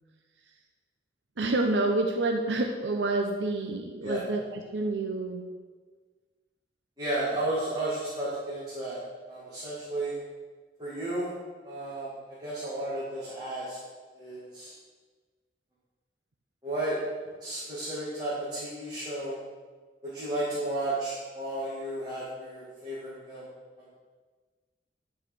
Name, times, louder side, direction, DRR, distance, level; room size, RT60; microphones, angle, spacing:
voice 1, 1.4-5.4, right 2 dB, 85° right, 3 dB, 0.7 m, -28 dB
voice 2, 7.0-9.0 9.3-10.2 10.8-11.3 11.6-13.8 14.1-14.7 16.6-17.0 17.4-19.4 20.0-23.5 23.8-23.9, right 1 dB, 25° right, -9 dB, 2.1 m, -33 dB
11.0 x 4.8 x 6.1 m, 1.4 s
head